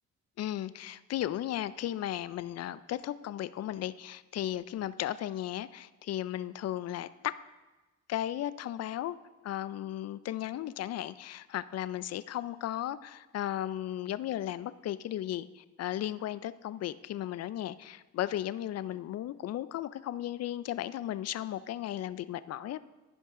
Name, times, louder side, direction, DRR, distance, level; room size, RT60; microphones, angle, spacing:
voice 1, 0.4-7.4 8.1-9.2 9.4-22.8, left 12 dB, 55° left, 16 dB, 0.5 m, -35 dB
15.0 x 5.4 x 3.7 m, 1.1 s
cardioid pair, 90°, 30 cm